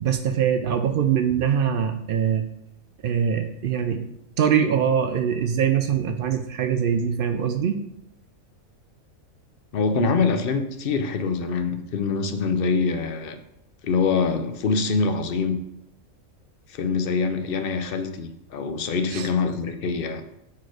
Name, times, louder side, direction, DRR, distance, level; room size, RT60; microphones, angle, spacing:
voice 1, 0.0-2.5 3.0-4.0 4.4-7.8 19.1-19.3, right 8 dB, 70° right, 7 dB, 0.5 m, -23 dB
voice 2, 9.7-13.4 13.8-15.6 16.7-20.2, left 4 dB, 55° left, 8 dB, 0.7 m, -24 dB
6.3 x 4.3 x 4.8 m, 0.79 s
omnidirectional pair, 1.4 m